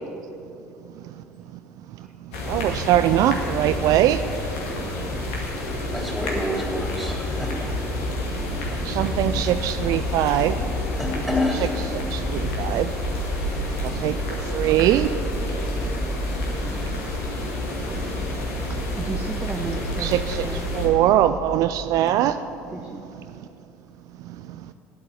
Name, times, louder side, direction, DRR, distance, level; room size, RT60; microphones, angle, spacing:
sound 1, 2.3-20.9, left 1 dB, 75° left, 2.1 m, -28 dB
voice 1, 2.5-4.3 5.0-5.4 8.3-10.7 12.1-12.9 13.5-15.1 15.8-17.0 17.9-18.1 20.0-22.4 24.2-24.7, right 12 dB, 55° right, 11 dB, 0.4 m, -23 dB
voice 2, 5.9-7.7 9.0-9.1 11.0-11.8 13.2-13.3, left 1 dB, ahead, -2 dB, 3.5 m, -28 dB
voice 3, 19.0-20.7 22.7-23.0, right 2 dB, 15° right, 3 dB, 0.9 m, -33 dB
9.4 x 8.6 x 9.3 m, 2.8 s
figure-of-eight pair, 55°, 7 cm